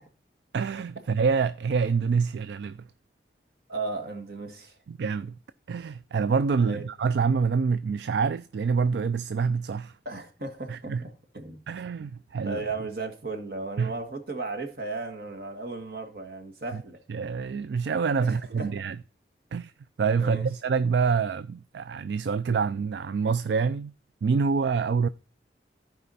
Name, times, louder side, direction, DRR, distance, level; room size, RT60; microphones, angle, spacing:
voice 1, 0.5-2.8 4.9-5.4 5.7-9.9 10.7-11.0 11.7-12.6 13.8-13.9 17.1-19.0 19.5-19.7 20.0-23.9 24.2-25.1, right 5 dB, 70° right, 0.4 m, -26 dB
voice 2, 3.7-4.8 6.7-6.8 10.1-11.6 12.0-12.1 12.4-17.0 18.2-18.7 20.2-20.5, right 3 dB, 55° right, 1.7 m, -35 dB
14.5 x 4.9 x 4.1 m
head